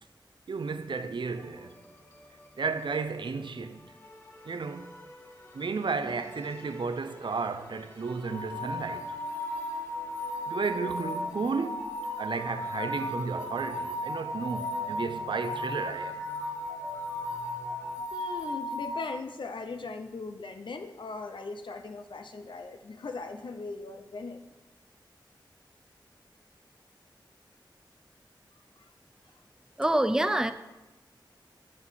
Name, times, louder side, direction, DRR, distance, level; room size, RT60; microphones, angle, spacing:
voice 1, 0.5-1.7 2.6-3.8 4.4-4.9 5.5-9.2 10.5-16.2, right 4 dB, 75° right, 0.6 m, -33 dB
sound 1, 1.2-18.0, left 1 dB, 30° left, 1.7 m, -48 dB
sound 2, 8.2-19.1, left 1 dB, 45° left, 1.9 m, -35 dB
voice 2, 18.1-24.5 28.8-28.9, left 3 dB, 75° left, 0.6 m, -39 dB
voice 3, 29.8-30.5, right 1 dB, 5° right, 0.5 m, -24 dB
8.0 x 6.2 x 7.4 m
wide cardioid pair, 85°, 8 cm